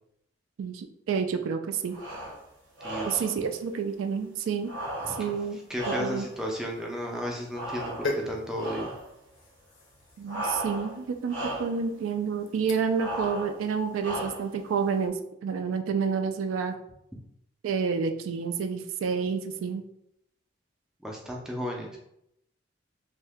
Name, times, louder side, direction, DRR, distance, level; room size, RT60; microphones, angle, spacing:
voice 1, 0.6-2.0 3.1-4.7 5.1-6.2 10.2-16.7 17.6-19.8, right 6 dB, 90° right, 8 dB, 0.3 m, -29 dB
sound 1, 1.9-2.4 2.8-3.4 4.6-6.4 7.5-8.3 8.6-9.1 10.3-11.0 11.3-11.8 13.0-13.6 14.0-14.6, right 1 dB, 75° right, 0.8 m, -35 dB
voice 2, 2.8-3.2 5.0-5.1 5.5-8.9 21.0-22.0, equal, 5° right, -1 dB, 0.3 m, -34 dB
sound 2, 7.9-13.1 13.5-13.8, left 2 dB, 80° left, 0.5 m, -40 dB
2.7 x 2.1 x 3.4 m, 0.79 s
head